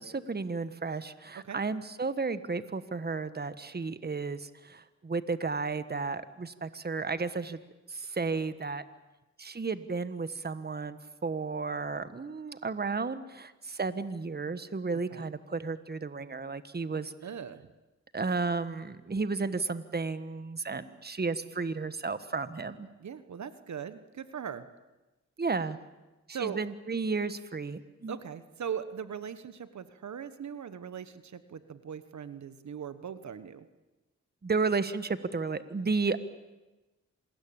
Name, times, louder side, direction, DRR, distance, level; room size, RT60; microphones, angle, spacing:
voice 1, 0.0-7.6 7.9-8.8 9.4-17.1 18.1-22.9 25.4-25.8 26.3-28.2 34.4-36.2, right 4 dB, 35° right, 12 dB, 1.4 m, -33 dB
voice 2, 17.2-17.6 23.0-24.7 26.3-26.6 28.1-33.7, right 8 dB, 75° right, 12 dB, 1.3 m, -40 dB
26.5 x 20.5 x 8.7 m, 1.1 s
cardioid pair, 70°, 29 cm